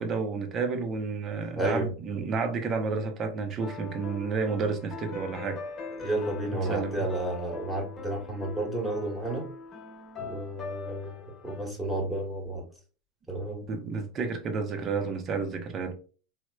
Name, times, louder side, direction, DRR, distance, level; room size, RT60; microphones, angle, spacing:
voice 1, 0.0-5.6 6.5-7.1 13.7-15.9, right 4 dB, 35° right, 0.5 m, -31 dB
voice 2, 1.5-1.9 6.0-9.5 10.2-12.6 13.3-13.6, right 1 dB, 5° right, 1.1 m, -31 dB
sound 1, 3.6-11.7, left 4 dB, 35° left, 1.0 m, -42 dB
3.0 x 2.0 x 2.2 m
supercardioid pair, 110°, 0 cm